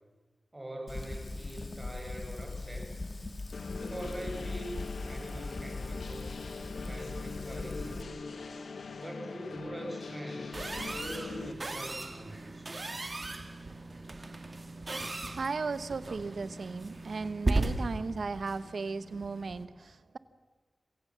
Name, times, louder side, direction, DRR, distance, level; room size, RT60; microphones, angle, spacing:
voice 1, 0.5-2.9 3.8-6.4 6.8-8.0 9.0-10.5 10.9-12.7, right 1 dB, 25° right, 2 dB, 6.0 m, -43 dB
Fire, 0.9-8.0, left 2 dB, 45° left, 1.6 m, -40 dB
sound 1, 3.5-11.5, left 4 dB, 85° left, 1.4 m, -42 dB
sound 2, 10.5-19.7, right 2 dB, 45° right, 2.2 m, -37 dB
voice 2, 15.3-20.2, right 4 dB, 75° right, 14 dB, 1.0 m, -36 dB
26.0 x 16.5 x 7.4 m, 1.3 s
wide cardioid pair, 65°, 0 cm